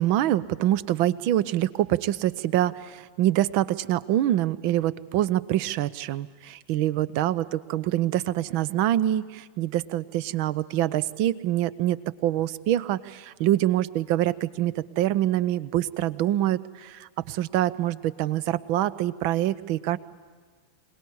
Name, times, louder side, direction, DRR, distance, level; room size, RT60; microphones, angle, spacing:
voice 1, 0.0-20.0, right 13 dB, 45° right, 19 dB, 0.7 m, -25 dB
26.0 x 18.5 x 9.8 m, 1.5 s
figure-of-eight pair, 90°, 0 cm